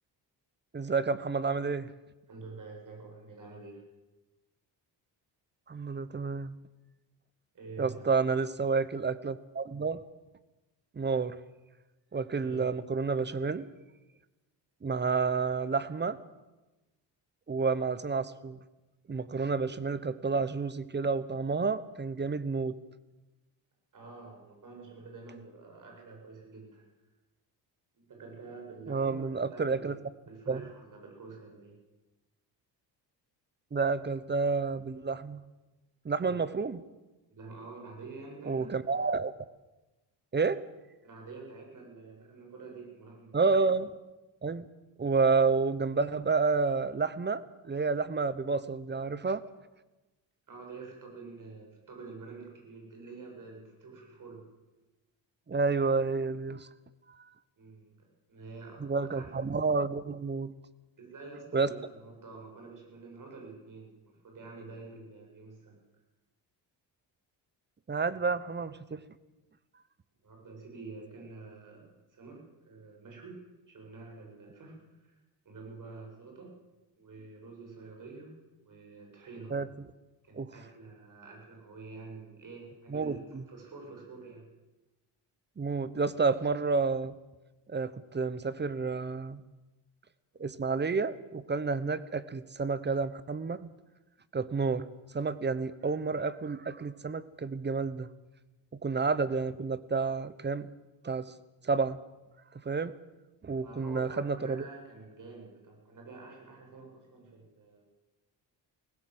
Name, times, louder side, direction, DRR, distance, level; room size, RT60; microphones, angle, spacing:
voice 1, 0.7-1.9 5.7-6.5 7.8-10.0 10.9-11.4 12.1-13.7 14.8-16.2 17.5-18.6 19.1-22.8 28.9-30.0 30.5-30.6 33.7-35.4 36.0-36.8 38.5-39.3 40.3-40.6 43.3-43.9 44.4-44.7 45.0-49.4 55.5-56.7 57.1-57.2 58.8-60.5 61.5-61.7 67.9-69.0 79.5-79.7 80.3-80.5 82.9-83.4 85.6-87.1 87.7-89.4 90.4-93.7 94.3-94.8 95.1-98.1 98.8-100.7 101.0-101.3 101.6-102.0 102.5-102.9 103.4-104.6, right 4 dB, 25° right, 16 dB, 1.0 m, -30 dB
voice 2, 2.3-3.8 7.5-8.1 12.4-12.7 23.9-26.8 27.9-29.9 30.3-31.8 36.2-36.4 37.3-38.7 41.0-43.5 50.5-54.5 57.6-59.3 61.0-65.8 70.2-73.4 73.7-75.2 75.4-76.5 77.0-79.5 80.2-84.5 103.6-107.8, right 3 dB, 50° right, 1 dB, 7.6 m, -48 dB
19.0 x 17.0 x 8.0 m, 1.1 s
cardioid pair, 105°, 42 cm